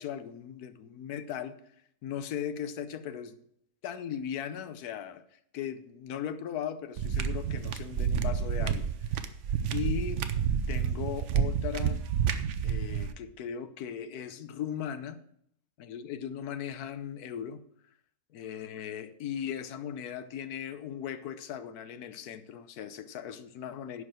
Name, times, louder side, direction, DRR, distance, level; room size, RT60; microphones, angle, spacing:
voice 1, 0.0-1.6 2.0-3.4 3.8-5.2 5.5-8.9 9.7-10.2 10.7-12.1 12.6-15.2 15.8-17.6 18.3-24.0, left 9 dB, 75° left, 1.2 m, -38 dB
sound 1, 7.0-13.1, right 7 dB, 60° right, 0.9 m, -29 dB
11.0 x 4.8 x 7.4 m
omnidirectional pair, 1.7 m